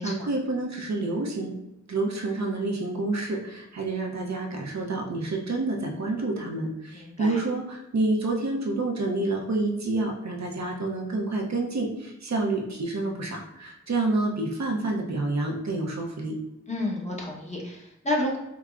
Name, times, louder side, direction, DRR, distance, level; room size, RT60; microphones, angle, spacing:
voice 1, 0.0-1.5 1.9-16.4, right 2 dB, 60° right, 0 dB, 0.6 m, -28 dB
voice 2, 6.9-7.4 16.7-18.4, left 1 dB, 20° left, -3 dB, 0.9 m, -30 dB
4.7 x 2.0 x 2.4 m, 0.89 s
wide cardioid pair, 50°, 30 cm